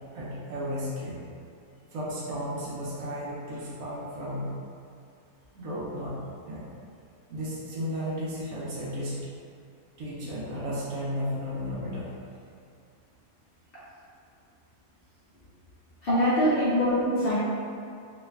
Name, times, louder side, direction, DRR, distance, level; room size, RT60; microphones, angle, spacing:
voice 1, 0.1-1.2 1.9-4.5 5.5-6.2 6.5-6.6 7.3-9.2 10.0-12.1 13.7-13.8 16.1-16.4, equal, 70° right, -6 dB, 1.1 m, -33 dB
voice 2, 16.0-17.4, equal, 60° left, -10 dB, 0.6 m, -23 dB
3.1 x 2.3 x 3.2 m, 2.4 s
omnidirectional pair, 1.6 m